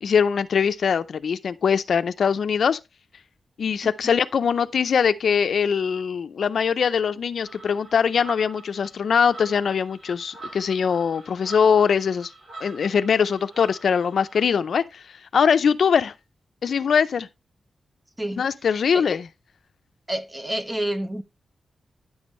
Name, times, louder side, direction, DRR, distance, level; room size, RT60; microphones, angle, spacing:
voice 1, 0.0-2.8 3.6-12.3 12.6-15.0 15.3-16.1 16.6-17.3 18.4-19.3, left 6 dB, 60° left, 0.5 m, -22 dB
sound 1, 7.4-14.5, right 3 dB, 60° right, 6.5 m, -44 dB
voice 2, 20.1-21.2, right 1 dB, 15° right, 0.6 m, -28 dB
10.0 x 7.2 x 3.1 m
wide cardioid pair, 175°, 0 cm